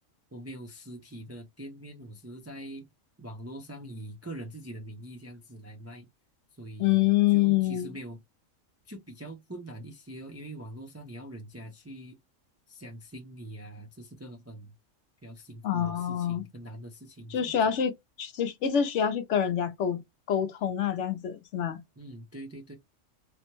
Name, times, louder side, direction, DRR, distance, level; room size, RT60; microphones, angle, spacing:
voice 1, 0.3-2.9 3.2-6.1 6.5-8.2 8.9-12.2 12.7-14.7 15.2-17.6 22.0-22.7, right 1 dB, 20° right, 0.5 m, -43 dB
voice 2, 6.8-8.0 15.6-16.4 17.3-17.9 18.2-20.0 20.3-21.8, left 10 dB, 70° left, 0.9 m, -26 dB
3.3 x 2.1 x 2.9 m
omnidirectional pair, 1.3 m